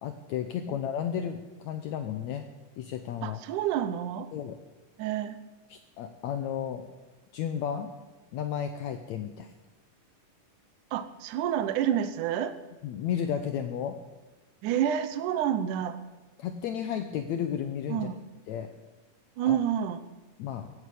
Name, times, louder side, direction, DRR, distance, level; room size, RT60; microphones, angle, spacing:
voice 1, 0.0-2.5 2.8-3.4 4.3-4.6 5.7-6.8 7.3-7.9 8.3-9.5 12.8-14.0 16.4-18.1 18.5-18.7 19.4-19.6 20.4-20.7, left 9 dB, 70° left, 8 dB, 2.0 m, -33 dB
voice 2, 3.2-4.3 5.0-5.4 10.9-12.6 14.6-16.0 17.9-18.2 19.4-20.0, right 10 dB, 75° right, 11 dB, 2.3 m, -29 dB
16.0 x 9.8 x 8.4 m, 1.2 s
omnidirectional pair, 3.7 m